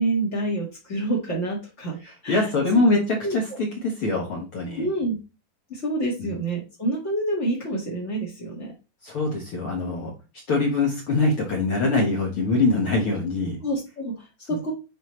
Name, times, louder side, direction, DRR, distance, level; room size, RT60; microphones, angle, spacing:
voice 1, 0.0-2.5 3.2-3.4 4.8-5.2 5.7-8.7 13.6-14.7, right 2 dB, 30° left, -2 dB, 1.4 m, -27 dB
voice 2, 2.0-4.9 9.0-10.1 10.5-13.6, left 2 dB, 55° left, -1 dB, 1.7 m, -23 dB
9.3 x 4.3 x 3.2 m, 0.29 s
omnidirectional pair, 3.8 m